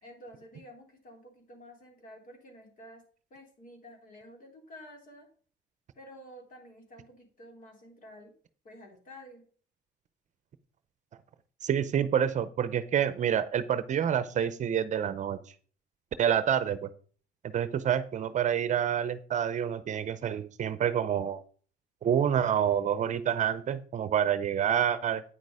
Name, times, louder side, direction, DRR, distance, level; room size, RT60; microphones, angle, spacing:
voice 1, 0.0-3.0 3.3-5.3 6.0-8.3 8.6-9.5, equal, 50° left, 2 dB, 3.7 m, -50 dB
voice 2, 11.6-15.4 16.2-16.9 17.4-21.4 22.0-25.2, right 9 dB, 45° right, 14 dB, 0.7 m, -28 dB
9.2 x 6.5 x 4.9 m, 0.43 s
cardioid pair, 110°, 17 cm